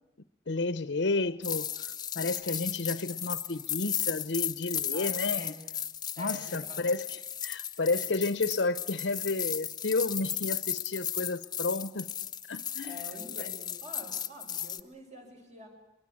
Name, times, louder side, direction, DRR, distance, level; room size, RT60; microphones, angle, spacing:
voice 1, 0.5-1.7 2.1-5.5 6.2-12.1 12.5-13.0, left 3 dB, 85° left, 0.8 m, -31 dB
sound 1, 1.4-14.8, left 9 dB, 25° left, 0.9 m, -35 dB
voice 2, 4.9-5.6 6.2-6.9 12.8-15.7, equal, 40° right, 6.3 m, -47 dB
23.0 x 23.0 x 8.6 m
head